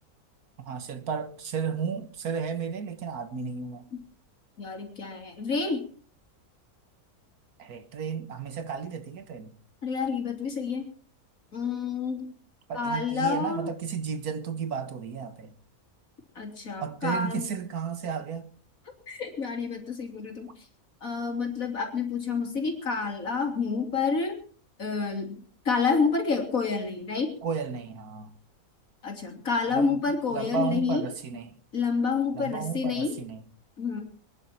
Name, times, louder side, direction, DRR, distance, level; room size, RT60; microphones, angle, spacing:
voice 1, 0.6-3.9 7.6-9.5 12.7-15.5 16.8-18.5 27.4-28.3 29.7-31.6 32.3-33.4, right 6 dB, 80° right, 1.8 m, -33 dB
voice 2, 4.6-5.8 9.8-10.9 11.5-12.3 12.7-13.7 16.3-17.4 19.1-20.5 21.0-24.4 24.8-25.4 25.6-27.3 29.0-31.0 31.7-33.2 33.8-34.0, left 5 dB, 65° left, 3.4 m, -28 dB
24.0 x 10.5 x 4.4 m
omnidirectional pair, 1.6 m